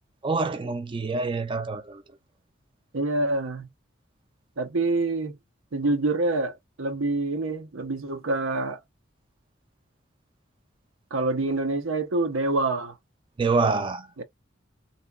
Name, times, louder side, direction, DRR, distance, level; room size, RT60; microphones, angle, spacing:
voice 1, 0.2-2.0 13.4-14.2, right 3 dB, 25° right, 0.4 m, -26 dB
voice 2, 2.9-3.7 4.6-5.3 5.7-8.8 11.1-12.9 14.2-14.3, right 2 dB, 85° right, 0.7 m, -26 dB
2.8 x 2.1 x 2.2 m
head